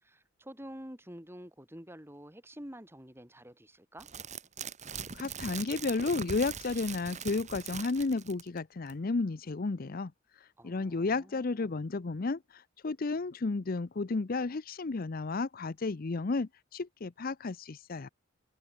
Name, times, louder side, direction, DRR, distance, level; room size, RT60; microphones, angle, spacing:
voice 1, 0.0-4.1 10.6-11.8, equal, 10° right, 4.3 m, -48 dB
sound 1, 4.0-8.6 8.9-9.0, right 6 dB, 35° right, 2.5 m, -41 dB
voice 2, 5.1-10.1 10.6-18.1, left 3 dB, 45° left, 0.6 m, -32 dB
head